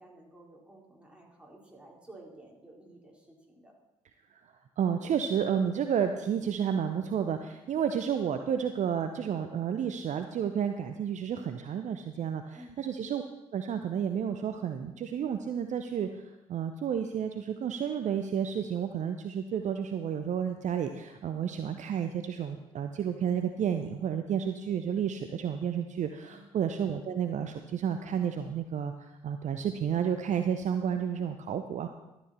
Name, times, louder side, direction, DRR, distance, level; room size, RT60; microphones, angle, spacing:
voice 1, 0.0-3.7 12.6-12.8 26.3-26.5, right 1 dB, 5° right, -2 dB, 3.8 m, -53 dB
voice 2, 4.8-13.2 13.5-31.9, right 8 dB, 50° right, 7 dB, 0.7 m, -31 dB
12.5 x 8.8 x 4.3 m, 0.97 s
figure-of-eight pair, 45°, 16 cm